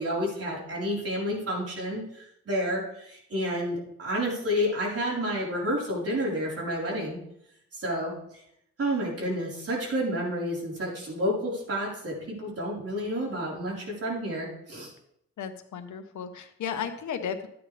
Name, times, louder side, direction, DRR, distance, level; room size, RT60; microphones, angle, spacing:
voice 1, 0.0-7.2 7.7-8.4 8.8-14.9, equal, 55° right, -4 dB, 4.7 m, -30 dB
voice 2, 15.4-17.5, left 7 dB, 80° left, 7 dB, 1.3 m, -34 dB
13.5 x 9.4 x 3.5 m, 0.76 s
cardioid pair, 85°, 29 cm